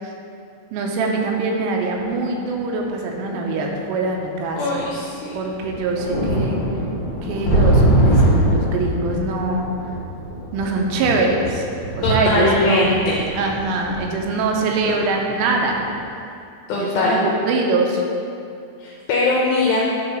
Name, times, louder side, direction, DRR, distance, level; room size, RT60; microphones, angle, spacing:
voice 1, 0.7-4.9 5.3-6.6 7.2-9.7 10.5-11.7 12.0-12.9 13.3-15.9 16.7-18.0, right 3 dB, 80° right, 1 dB, 3.2 m, -23 dB
sound 1, 2.0-2.1 3.1-3.2 4.4-4.5 4.8-4.9 5.4-15.5 15.9-16.0, right 1 dB, 70° left, 1.7 m, -22 dB
voice 2, 4.6-5.3 12.0-13.2 16.7-17.2 18.8-19.9, left 2 dB, 85° left, -4 dB, 2.4 m, -20 dB
9.7 x 4.0 x 6.0 m, 2.5 s
omnidirectional pair, 5.9 m